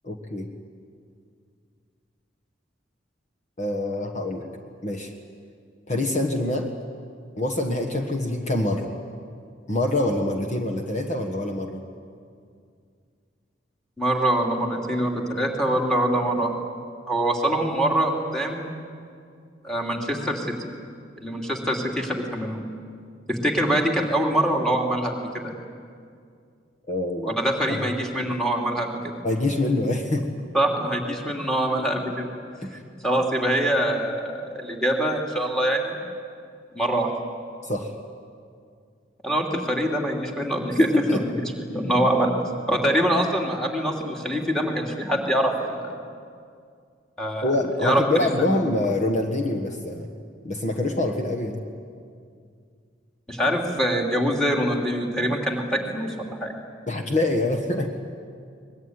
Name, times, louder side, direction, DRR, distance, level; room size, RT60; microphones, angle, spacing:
voice 1, 0.0-0.5 3.6-4.5 4.8-5.1 5.9-6.7 7.4-8.9 9.7-11.8 26.9-27.4 27.7-27.9 29.2-30.3 32.6-32.8 37.6-37.9 40.8-41.3 47.4-50.1 50.4-51.6 56.9-57.9, left 1 dB, 40° left, 3 dB, 1.5 m, -25 dB
voice 2, 14.0-16.5 17.1-18.7 19.6-20.5 21.2-22.6 23.3-25.5 27.4-29.2 30.5-32.3 32.7-36.0 36.7-37.1 39.2-41.2 41.7-42.4 42.7-45.9 47.2-47.5 47.8-48.3 53.3-56.1 56.4-56.5, right 1 dB, 5° left, 1 dB, 2.9 m, -24 dB
23.5 x 21.0 x 9.7 m, 2.3 s
head